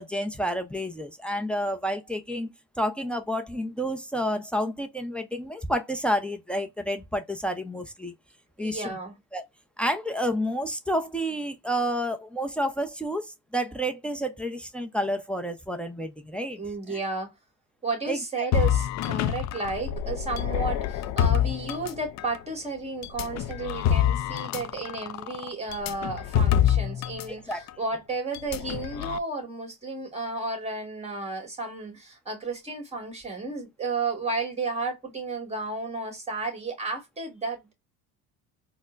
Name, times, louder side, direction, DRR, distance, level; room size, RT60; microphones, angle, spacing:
voice 1, 0.0-2.5 2.8-8.1 8.6-9.0 9.3-9.4 9.8-16.6 16.9-17.0 18.1-18.2 27.3-27.6, equal, 5° left, 0.6 m, -30 dB
voice 2, 8.6-9.1 16.6-17.3 17.8-37.7, right 3 dB, 20° right, 1.9 m, -33 dB
sound 1, 18.5-22.4 23.0-27.3 27.5-27.7 28.3-29.2, left 10 dB, 55° left, 0.5 m, -26 dB
4.2 x 2.1 x 2.4 m
cardioid pair, 110°, 33 cm